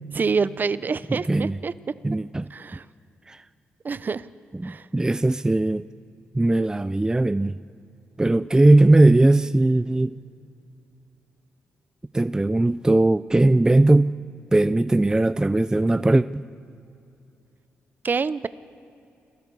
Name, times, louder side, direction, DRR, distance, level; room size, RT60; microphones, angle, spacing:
voice 1, 0.1-1.7 2.5-2.8 3.8-4.3 4.6-4.9 18.0-18.5, right 5 dB, 40° right, 16 dB, 0.8 m, -26 dB
voice 2, 1.1-1.6 2.0-2.5 3.3-3.4 4.6-5.9 6.4-7.6 8.2-10.1 12.1-14.1 14.5-16.4, right 2 dB, 15° right, 14 dB, 0.5 m, -19 dB
29.5 x 23.0 x 4.8 m, 2.7 s
cardioid pair, 65°, 5 cm